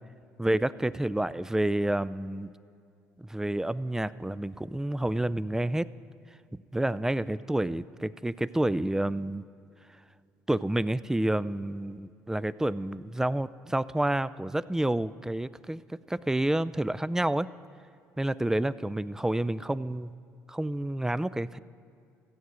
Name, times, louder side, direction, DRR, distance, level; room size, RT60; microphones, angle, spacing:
voice 1, 0.4-2.5 3.2-5.9 6.5-9.4 10.5-17.5 18.2-20.1 20.5-21.6, right 1 dB, 10° right, 17 dB, 0.3 m, -29 dB
14.5 x 8.0 x 6.2 m, 2.4 s
hypercardioid pair, 65°, 7 cm